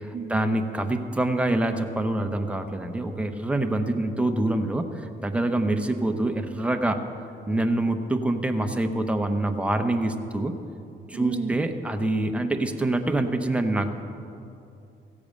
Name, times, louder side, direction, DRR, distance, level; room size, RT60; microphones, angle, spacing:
voice 1, 0.0-7.1 7.5-10.6 11.1-13.9, right 1 dB, 5° right, 5 dB, 0.9 m, -25 dB
voice 2, 11.1-11.6, right 6 dB, 35° right, 6 dB, 0.5 m, -31 dB
15.5 x 8.5 x 6.6 m, 2.7 s
cardioid pair, 90°, 20 cm